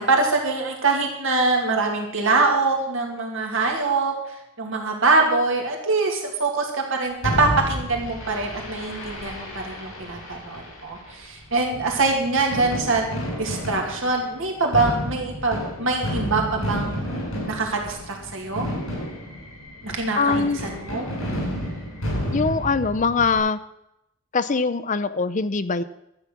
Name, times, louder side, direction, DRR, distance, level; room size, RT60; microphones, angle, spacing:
voice 1, 0.0-17.0 17.4-18.7 19.8-21.1, right 3 dB, 65° right, 1 dB, 2.3 m, -24 dB
Fireworks, 7.2-23.4, equal, 75° left, 6.3 m, -31 dB
voice 2, 20.2-20.6 22.3-23.6 24.3-25.8, left 4 dB, 40° left, 12 dB, 0.6 m, -22 dB
12.5 x 8.5 x 6.0 m, 0.82 s
head